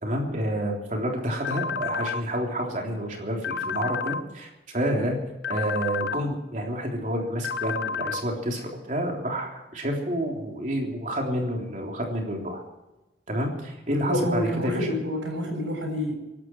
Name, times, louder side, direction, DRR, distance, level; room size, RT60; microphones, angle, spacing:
voice 1, 0.0-5.2 5.5-12.6 13.3-15.0, equal, 40° right, 0 dB, 3.5 m, -29 dB
sound 1, 1.4-2.2 3.4-4.2 5.4-6.2 7.4-8.2, left 5 dB, 60° left, 0.8 m, -30 dB
voice 2, 14.0-16.1, equal, 80° right, 2 dB, 6.9 m, -28 dB
25.0 x 12.0 x 4.7 m, 1.0 s
head